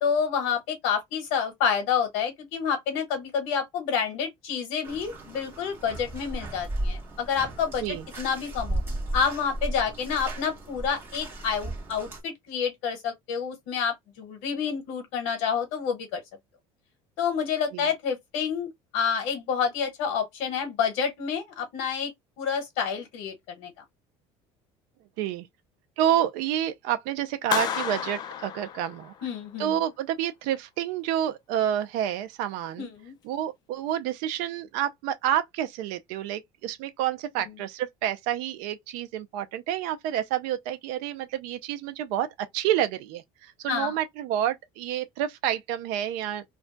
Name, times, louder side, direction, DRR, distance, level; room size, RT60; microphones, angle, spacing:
voice 1, 0.0-8.8 9.1-16.2 17.2-22.1 22.4-23.7 29.2-29.8 32.8-33.1 43.7-43.9, left 7 dB, 70° left, 1.0 m, -28 dB
Bathtub (filling or washing), 4.8-12.2, right 1 dB, 15° right, 1.0 m, -35 dB
voice 2, 26.0-29.1 29.6-32.9 33.2-46.4, right 11 dB, 75° right, 0.4 m, -29 dB
Clapping, 27.5-29.4, left 8 dB, 30° left, 0.4 m, -31 dB
2.3 x 2.2 x 3.8 m
cardioid pair, 165°, 13 cm